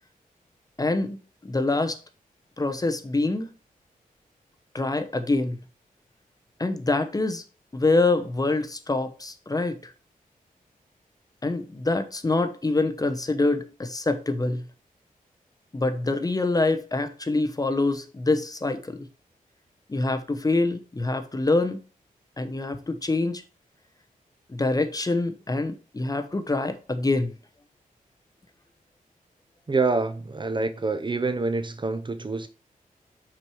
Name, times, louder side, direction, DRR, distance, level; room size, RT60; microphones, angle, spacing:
voice 1, 0.8-1.2 1.4-2.0 2.6-3.5 4.7-5.6 6.6-7.4 7.7-9.9 11.4-14.6 15.7-19.1 19.9-21.8 22.4-23.4 24.5-27.3, left 2 dB, 25° left, 0.9 m, -25 dB
voice 2, 29.7-32.5, right 3 dB, 30° right, 0.7 m, -26 dB
6.0 x 4.6 x 4.8 m
wide cardioid pair, 90°, 15 cm